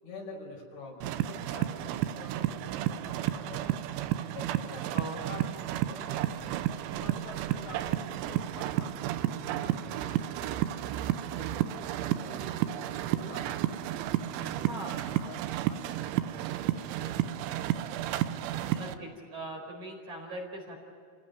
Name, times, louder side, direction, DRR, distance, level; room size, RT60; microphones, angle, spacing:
voice 1, 0.0-3.8 4.3-4.9 5.3-6.5 6.9-11.9 12.2-13.6 13.9-14.7 15.1-15.8 16.6-17.6, left 3 dB, 65° left, 0 dB, 7.4 m, -47 dB
sound 1, 1.0-18.9, right 13 dB, 80° right, 3.2 m, -32 dB
voice 2, 14.7-15.0 18.5-20.8, right 1 dB, 40° right, 0 dB, 5.5 m, -40 dB
29.5 x 18.0 x 9.5 m, 2.4 s
omnidirectional pair, 5.7 m